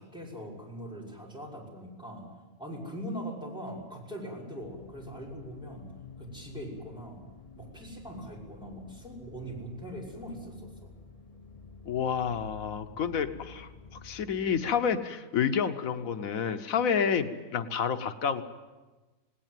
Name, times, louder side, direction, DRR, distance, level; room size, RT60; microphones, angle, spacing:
voice 1, 0.0-2.3 2.6-5.9 6.2-7.2 7.6-10.9, equal, 5° right, -4 dB, 6.0 m, -41 dB
sound 1, 4.6-14.7, left 5 dB, 30° left, 0.9 m, -50 dB
voice 2, 11.8-18.4, left 7 dB, 85° left, 9 dB, 1.4 m, -29 dB
19.0 x 18.5 x 9.2 m, 1.2 s
omnidirectional pair, 1.4 m